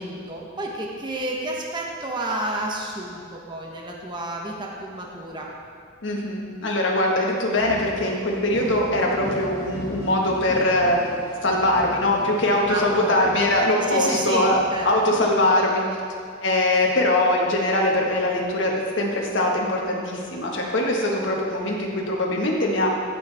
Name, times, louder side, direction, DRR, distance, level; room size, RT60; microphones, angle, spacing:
voice 1, 0.0-5.5 12.7-13.1 13.9-14.5 14.7-15.2, right 1 dB, 25° right, -2 dB, 1.0 m, -30 dB
voice 2, 6.0-11.0 11.4-14.6 14.8-15.8 16.4-22.9, left 1 dB, 70° left, -1 dB, 1.6 m, -22 dB
sound 1, 7.6-15.4, equal, 20° left, 2.3 m, -38 dB
15.0 x 6.5 x 3.5 m, 2.2 s
head